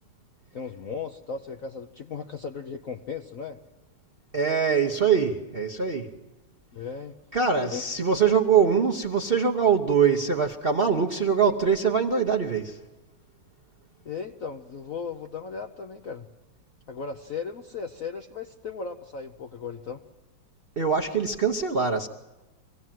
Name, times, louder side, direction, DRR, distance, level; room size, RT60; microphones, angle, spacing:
voice 1, 0.5-3.6 6.7-7.2 7.6-7.8 14.0-16.3 16.9-20.0, left 5 dB, 60° left, 0.8 m, -36 dB
voice 2, 4.3-6.1 7.3-12.8 20.8-22.1, right 6 dB, 45° right, 0.7 m, -23 dB
24.5 x 17.0 x 7.5 m
omnidirectional pair, 2.4 m